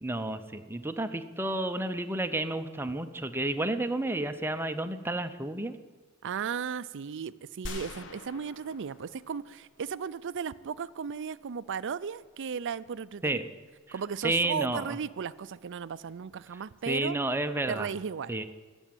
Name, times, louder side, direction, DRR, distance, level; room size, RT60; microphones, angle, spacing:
voice 1, 0.0-5.8 13.2-13.5 14.2-15.0 16.9-17.9 18.3-18.4, right 2 dB, 10° right, 8 dB, 0.7 m, -31 dB
voice 2, 6.2-13.4 13.9-17.2 17.7-18.4, right 6 dB, 60° right, 16 dB, 0.5 m, -35 dB
sound 1, 7.7-10.0, left 2 dB, 60° left, 1.0 m, -44 dB
16.5 x 7.1 x 9.2 m, 1.4 s
head